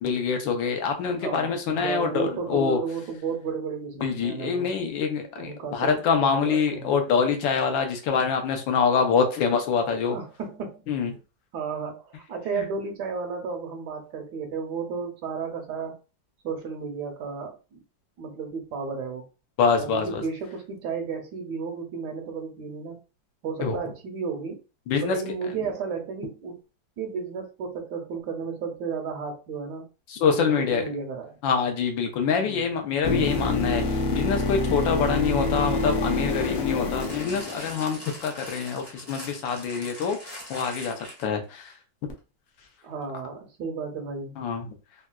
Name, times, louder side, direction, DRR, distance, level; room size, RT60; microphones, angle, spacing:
voice 1, 0.0-2.8 4.0-10.2 10.9-11.1 12.6-12.7 19.6-20.2 23.6-23.8 24.9-25.2 30.1-30.8 31.4-41.7 44.4-44.7, left 6 dB, 80° left, 4 dB, 1.4 m, -25 dB
voice 2, 1.1-4.7 5.4-7.0 10.1-10.8 11.5-16.0 16.4-17.8 18.2-19.2 19.8-23.0 23.4-24.6 25.0-26.6 27.0-29.9 30.3-31.4 32.4-32.7 42.8-44.3, right 5 dB, 70° right, 4 dB, 1.1 m, -33 dB
sound 1, 33.0-38.1 42.1-42.2, left 2 dB, 65° left, 0.8 m, -27 dB
sound 2, 37.0-41.4 42.2-42.3, equal, 40° left, 0.3 m, -41 dB
3.8 x 2.2 x 2.2 m, 0.31 s
omnidirectional pair, 2.0 m